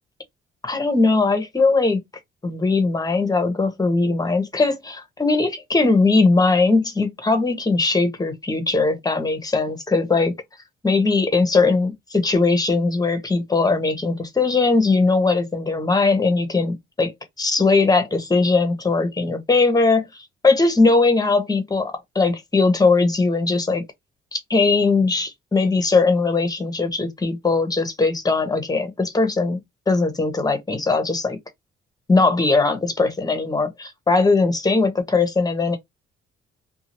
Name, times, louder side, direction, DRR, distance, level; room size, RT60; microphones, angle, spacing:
voice 1, 0.6-2.0 2.4-10.3 10.8-17.1 17.4-23.8 24.3-29.6 29.9-31.4 32.1-35.8, left 3 dB, 20° left, 1.0 m, -20 dB
2.7 x 2.4 x 2.9 m
cardioid pair, 90°, 20 cm